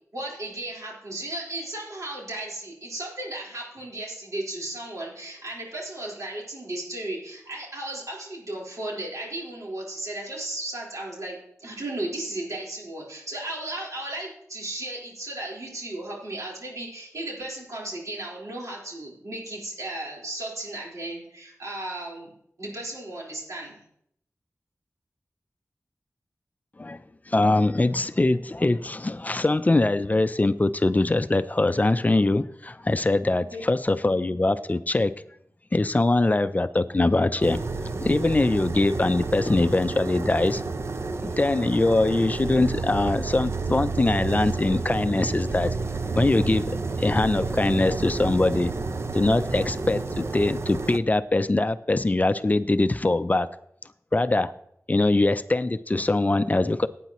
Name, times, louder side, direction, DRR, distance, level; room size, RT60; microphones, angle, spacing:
voice 1, 0.1-22.3 22.6-23.8 33.3-33.6, right 1 dB, 85° right, -4 dB, 4.3 m, -35 dB
voice 2, 27.3-35.1 35.7-37.6 38.0-40.6 41.2-45.7 46.2-48.7 49.1-53.5 54.1-54.5 54.9-56.9, left 2 dB, 30° left, 13 dB, 0.5 m, -22 dB
sound 1, 37.4-51.0, right 3 dB, 55° right, 0.6 m, -30 dB
17.5 x 9.2 x 3.1 m, 0.72 s
wide cardioid pair, 85°, 5 cm